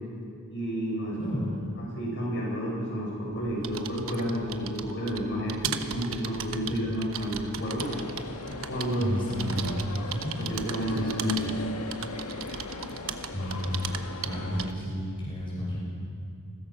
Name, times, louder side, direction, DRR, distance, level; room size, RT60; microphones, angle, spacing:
voice 1, 0.5-1.4 1.8-7.9 8.7-9.1 9.5-9.7 10.4-11.5, equal, 55° left, -3 dB, 7.5 m, -31 dB
voice 2, 1.2-1.6 9.0-9.8 10.1-10.4 11.0-11.1 13.3-13.8 14.2-15.8, equal, 25° left, -5 dB, 6.3 m, -32 dB
sound 1, 3.3-14.9, right 7 dB, 65° right, 1.2 m, -38 dB
sound 2, 7.8-14.7, left 3 dB, 80° left, 1.7 m, -39 dB
29.5 x 21.0 x 6.1 m, 2.4 s
head